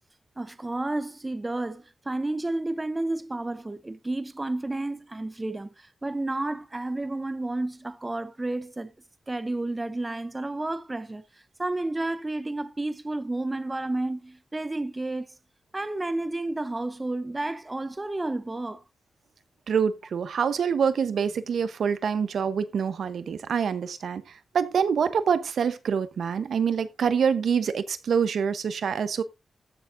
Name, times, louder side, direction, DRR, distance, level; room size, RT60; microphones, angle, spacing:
voice 1, 0.4-8.9 9.3-11.2 11.6-15.3 15.7-18.8, right 2 dB, 20° right, 0.6 m, -31 dB
voice 2, 19.7-24.2 24.5-29.2, right 6 dB, 75° right, 0.9 m, -26 dB
14.5 x 6.8 x 2.6 m
wide cardioid pair, 130°, 0 cm